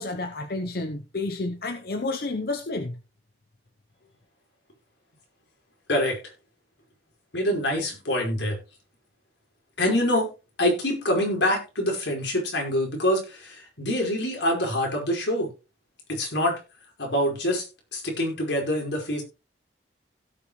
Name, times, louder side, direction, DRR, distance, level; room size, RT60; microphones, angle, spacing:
voice 1, 0.0-3.0, left 2 dB, 55° left, 0.8 m, -30 dB
voice 2, 7.3-8.6 9.8-10.3 10.6-15.5 16.1-16.6 17.0-17.6 17.9-19.2, left 1 dB, 85° left, 5.0 m, -25 dB
16.5 x 6.3 x 3.2 m
head